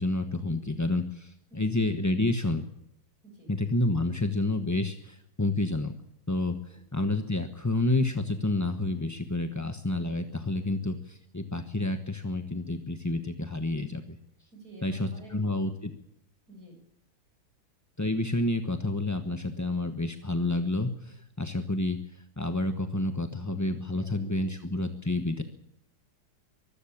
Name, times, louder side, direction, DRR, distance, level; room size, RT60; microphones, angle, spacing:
voice 1, 0.0-2.7 3.5-5.9 6.3-14.2 14.8-15.9 18.0-25.4, left 2 dB, 15° left, 7 dB, 0.8 m, -29 dB
voice 2, 14.5-15.4 16.5-16.8 24.0-24.5, right 1 dB, 50° right, 2 dB, 8.0 m, -49 dB
24.0 x 14.0 x 8.7 m, 0.77 s
omnidirectional pair, 2.1 m